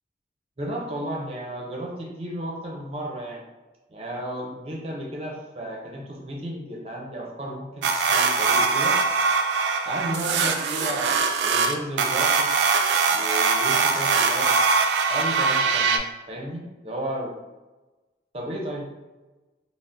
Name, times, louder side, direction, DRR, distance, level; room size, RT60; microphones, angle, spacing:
voice 1, 0.6-3.4 3.9-9.0 9.8-12.5 13.1-14.5 15.1-17.4 18.3-18.9, right 1 dB, 35° right, -1 dB, 0.6 m, -33 dB
sound 1, 7.8-16.0, right 4 dB, 80° right, 0.3 m, -22 dB
2.6 x 2.0 x 3.5 m, 1.1 s
head